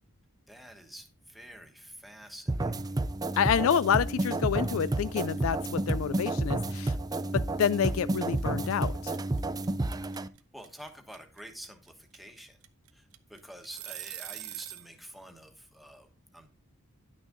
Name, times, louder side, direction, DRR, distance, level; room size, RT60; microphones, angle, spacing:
voice 1, 0.5-3.0 10.5-12.6 12.9-16.5, equal, ahead, 1.2 m, -48 dB
sound 1, 2.5-10.3, right 2 dB, 20° right, 0.4 m, -30 dB
voice 2, 3.4-7.0 7.3-9.1, left 8 dB, 70° left, 0.3 m, -28 dB
sound 2, 3.6-14.9, right 16 dB, 85° right, 0.8 m, -43 dB
10.5 x 6.3 x 3.8 m
head